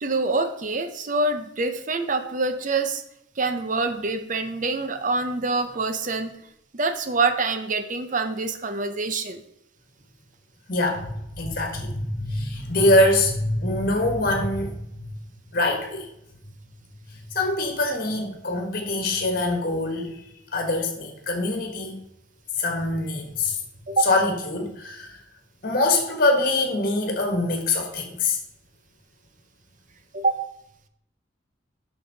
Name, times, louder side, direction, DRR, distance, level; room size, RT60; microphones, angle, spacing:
voice 1, 0.0-3.0 3.4-6.4 6.7-9.4 23.9-24.1 30.1-30.3, right 3 dB, 40° right, 9 dB, 0.7 m, -25 dB
voice 2, 10.7-14.7 15.0-15.2 15.5-16.1 17.1-22.0 22.6-23.6 24.0-25.2 25.6-28.4, left 2 dB, 50° left, 3 dB, 1.6 m, -24 dB
8.5 x 6.1 x 4.0 m, 0.78 s
head